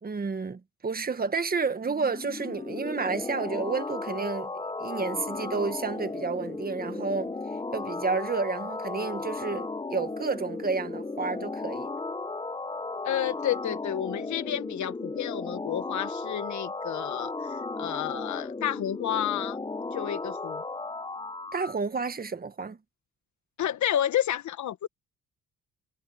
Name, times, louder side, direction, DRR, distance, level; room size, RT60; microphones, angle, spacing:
voice 1, 0.0-7.3 7.7-11.9 21.5-22.8, right 4 dB, 30° right, 1.6 m, -31 dB
sound 1, 1.8-21.8, left 3 dB, 15° left, 1.1 m, -35 dB
voice 2, 13.0-19.6 19.9-20.6 23.6-24.9, left 11 dB, 70° left, 1.6 m, -30 dB
cardioid pair, 90°, 30 cm